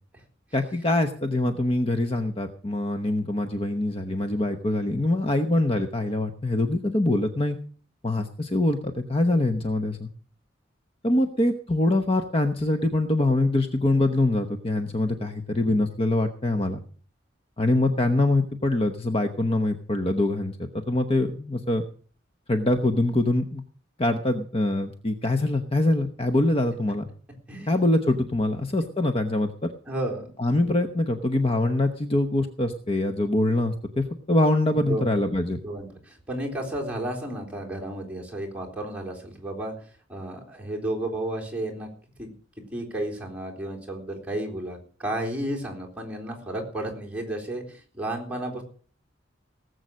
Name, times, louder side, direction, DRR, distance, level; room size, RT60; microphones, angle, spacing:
voice 1, 0.5-7.6 8.0-10.1 11.0-16.8 17.6-21.8 22.5-23.6 24.0-27.1 27.7-29.7 30.4-35.6, left 2 dB, 30° left, 7 dB, 1.0 m, -24 dB
voice 2, 29.9-30.3 34.8-35.1 35.6-41.9 42.2-42.3 42.7-48.6, right 1 dB, 5° right, -1 dB, 3.9 m, -32 dB
18.5 x 8.0 x 6.4 m, 0.43 s
head